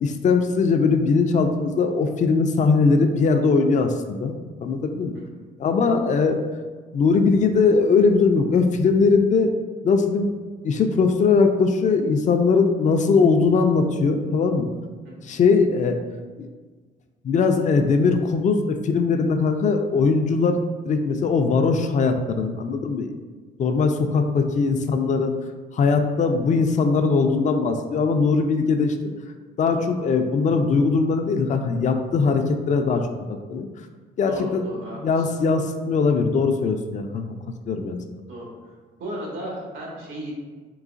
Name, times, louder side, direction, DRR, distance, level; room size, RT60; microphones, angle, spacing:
voice 1, 0.0-4.3 4.6-5.1 5.6-6.4 6.9-9.5 9.8-10.3 10.6-14.7 15.2-16.0 16.4-16.5 17.2-20.6 20.9-23.1 23.6-25.3 25.7-28.9 29.6-33.7 34.2-34.6 35.0-37.4 37.7-38.0, left 4 dB, 40° left, 5 dB, 0.4 m, -20 dB
voice 2, 34.3-35.3 38.3-38.5 39.0-40.3, right 1 dB, 80° right, -3 dB, 1.2 m, -35 dB
3.9 x 3.0 x 2.5 m, 1.4 s
cardioid pair, 90°, 20 cm